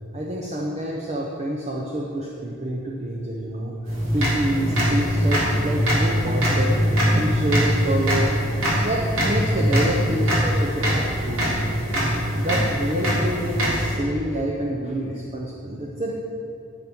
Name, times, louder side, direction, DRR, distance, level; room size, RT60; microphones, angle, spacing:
voice 1, 0.1-3.7 4.0-6.8 7.2-8.3 8.7-11.5 12.4-16.1, right 1 dB, 35° right, -3 dB, 0.8 m, -27 dB
sound 1, 3.8-14.0, equal, 90° right, 2.7 m, -22 dB
12.0 x 7.0 x 4.5 m, 2.5 s
head